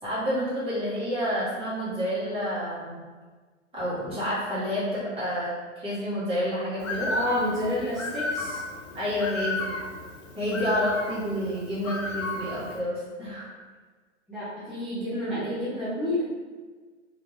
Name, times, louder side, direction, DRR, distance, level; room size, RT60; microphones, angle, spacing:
voice 1, 0.0-3.0 3.7-7.1 8.9-9.7 10.3-13.5, equal, 15° right, -10 dB, 1.4 m, -29 dB
Bird, 6.8-12.8, left 2 dB, 85° left, 0.7 m, -33 dB
voice 2, 7.1-8.6 14.3-16.2, left 1 dB, ahead, -14 dB, 0.7 m, -29 dB
2.8 x 2.3 x 2.9 m, 1.4 s
hypercardioid pair, 110°, 37 cm